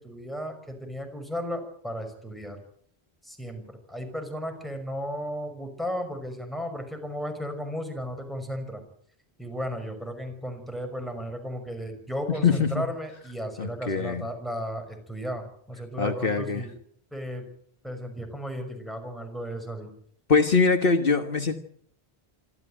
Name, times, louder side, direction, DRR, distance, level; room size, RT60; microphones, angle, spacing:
voice 1, 0.0-2.6 3.2-8.8 9.4-16.7 17.1-17.5 17.8-19.9, equal, ahead, 4 dB, 5.7 m, -34 dB
voice 2, 12.3-12.7 13.6-14.2 16.0-16.6 20.3-21.5, left 4 dB, 60° left, 7 dB, 1.5 m, -23 dB
26.5 x 13.5 x 8.9 m, 0.65 s
omnidirectional pair, 1.1 m